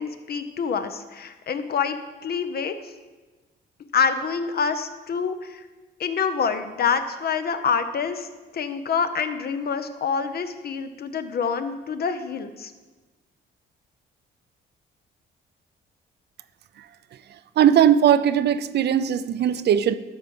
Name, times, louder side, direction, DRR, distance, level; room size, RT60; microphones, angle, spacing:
voice 1, 0.0-2.0 2.2-2.7 3.9-5.6 6.0-8.3 8.5-12.7, left 6 dB, 50° left, 9 dB, 0.8 m, -26 dB
voice 2, 17.6-19.9, right 9 dB, 60° right, 13 dB, 0.5 m, -19 dB
12.5 x 4.5 x 5.4 m, 1.3 s
cardioid pair, 90°, 20 cm